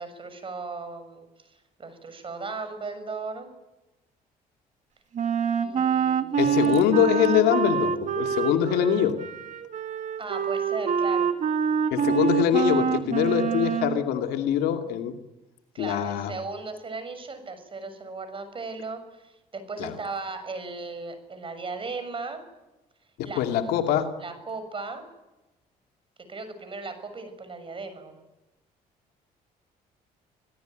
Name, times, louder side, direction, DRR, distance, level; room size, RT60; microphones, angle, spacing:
voice 1, 0.0-3.5 5.6-6.6 10.2-11.3 15.7-22.4 23.2-23.4 24.2-25.0 26.3-28.2, right 3 dB, 35° right, 9 dB, 6.7 m, -37 dB
Wind instrument woodwind instrument, 5.1-14.0, right 7 dB, 50° right, 2.1 m, -26 dB
voice 2, 6.4-9.2 11.9-15.1 15.8-16.3 19.8-19.9 23.4-24.1, left 10 dB, 85° left, 5 dB, 2.6 m, -23 dB
27.5 x 17.0 x 9.2 m, 1.0 s
cardioid pair, 90°, 16 cm